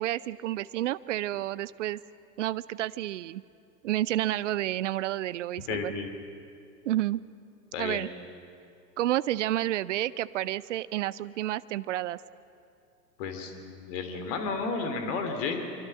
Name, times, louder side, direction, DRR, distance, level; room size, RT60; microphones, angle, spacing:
voice 1, 0.0-2.0 2.4-3.4 3.8-5.9 6.8-7.2 7.8-8.1 9.0-12.2, right 14 dB, 45° right, 18 dB, 0.7 m, -30 dB
voice 2, 5.7-6.1 7.7-8.0 13.2-15.6, left 4 dB, 45° left, 6 dB, 3.1 m, -32 dB
25.0 x 24.5 x 6.1 m, 2.5 s
figure-of-eight pair, 100°, 50 cm